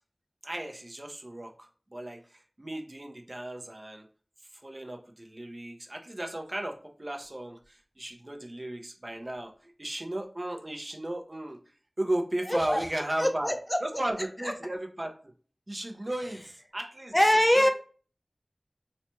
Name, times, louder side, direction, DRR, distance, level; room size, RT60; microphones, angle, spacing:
voice 1, 0.4-4.0 4.6-11.6 12.0-13.5 13.8-15.3 15.7-17.1 17.5-17.7, right 1 dB, 45° right, 4 dB, 0.6 m, -35 dB
voice 2, 12.5-12.8 13.2-13.8 14.4-14.5 17.1-17.7, equal, 20° left, 5 dB, 0.4 m, -23 dB
3.9 x 2.2 x 2.9 m, 0.40 s
wide cardioid pair, 50°, 0 cm